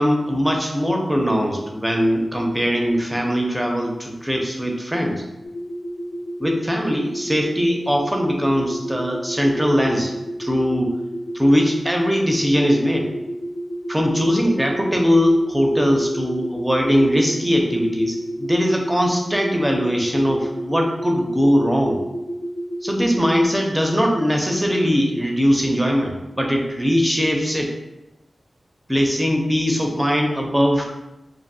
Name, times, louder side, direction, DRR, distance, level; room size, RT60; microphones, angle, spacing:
voice 1, 0.0-5.2 6.4-10.1 10.4-11.0 11.3-13.1 13.9-22.0 22.8-27.7 28.9-30.8, equal, 10° right, 1 dB, 0.5 m, -20 dB
sound 1, 5.4-23.5, right 1 dB, 55° left, 0.3 m, -31 dB
2.6 x 2.5 x 2.6 m, 0.97 s
cardioid pair, 60°, 0 cm